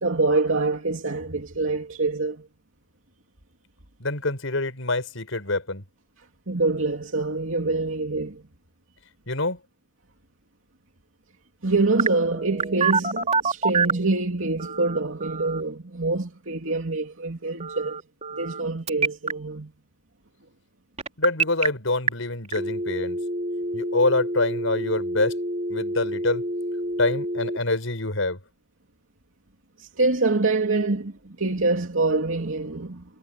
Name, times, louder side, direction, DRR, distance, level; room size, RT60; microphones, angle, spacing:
voice 1, 0.0-2.5 6.5-8.4 11.6-18.0 18.3-19.7 29.8-33.0, right 3 dB, 85° right, 2.7 m, -25 dB
voice 2, 4.0-5.8 9.3-9.6 21.2-23.2 23.7-25.3 25.7-26.4 27.0-28.4, left 2 dB, 85° left, 5.3 m, -25 dB
Telephone, 12.0-14.1 14.6-15.6 17.6-18.6 18.9-19.3 21.0-21.7 22.1-22.2 22.5-27.6, right 3 dB, 35° right, 3.4 m, -27 dB
head